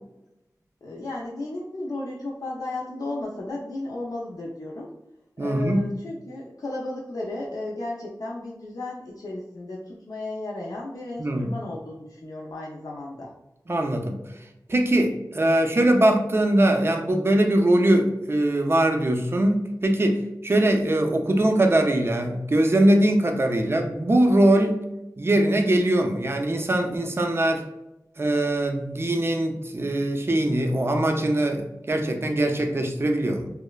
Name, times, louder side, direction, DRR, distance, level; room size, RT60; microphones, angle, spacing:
voice 1, 0.8-4.9 5.4-13.3 23.3-23.7, left 2 dB, 65° left, -4 dB, 0.4 m, -34 dB
voice 2, 5.4-5.9 11.2-11.5 13.7-14.2 14.7-24.8 25.2-27.6 28.2-33.5, right 1 dB, 35° right, 4 dB, 0.4 m, -22 dB
3.0 x 2.0 x 2.2 m, 0.92 s
wide cardioid pair, 70°, 7 cm